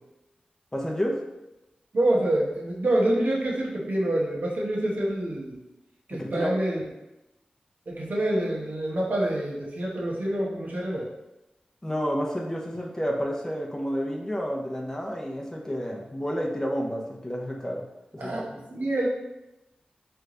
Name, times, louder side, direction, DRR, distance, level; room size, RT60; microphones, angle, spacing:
voice 1, 0.7-1.2 6.1-6.6 11.8-17.8 18.1-18.5, equal, 20° left, -1 dB, 0.8 m, -30 dB
voice 2, 1.9-5.6 6.1-6.8 7.9-11.1 18.2-18.4 18.7-19.1, right 1 dB, 70° right, -4 dB, 1.1 m, -26 dB
3.4 x 3.1 x 3.8 m, 0.96 s
cardioid pair, 55°, 3 cm